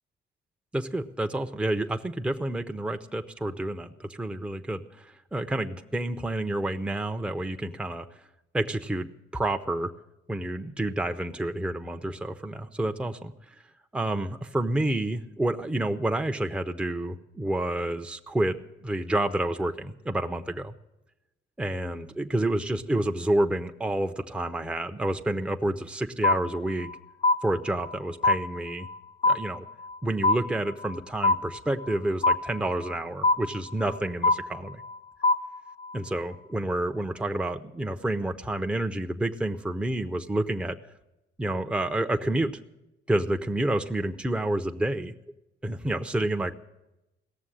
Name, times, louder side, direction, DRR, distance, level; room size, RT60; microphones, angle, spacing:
voice 1, 0.7-8.1 8.5-9.9 10.3-13.3 13.9-20.7 21.6-26.9 27.4-28.9 29.2-29.7 30.0-34.8 35.9-40.8 41.4-42.5 43.1-45.1 45.6-46.5, right 1 dB, 5° right, 5 dB, 0.7 m, -29 dB
sound 1, 26.2-26.9 27.2-28.0 28.2-29.0 29.2-30.0 30.2-31.0 31.2-32.0 32.2-33.0 33.2-34.0 34.2-35.0 35.2-36.0, left 2 dB, 30° left, 0.5 m, -24 dB
17.0 x 7.0 x 9.8 m, 0.93 s
cardioid pair, 90°, 20 cm